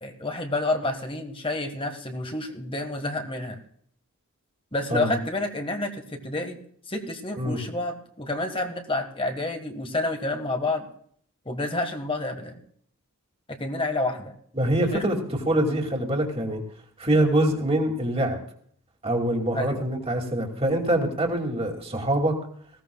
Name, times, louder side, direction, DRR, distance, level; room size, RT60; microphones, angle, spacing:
voice 1, 0.0-3.6 4.7-6.6 6.9-10.9 11.4-12.6 13.5-14.3 14.8-15.0 19.5-19.8, left 2 dB, 25° left, 5 dB, 1.6 m, -29 dB
voice 2, 14.5-15.2 15.4-16.6 17.0-18.4 19.0-22.4, right 1 dB, 25° right, 2 dB, 2.5 m, -24 dB
19.5 x 16.5 x 2.3 m, 0.62 s
head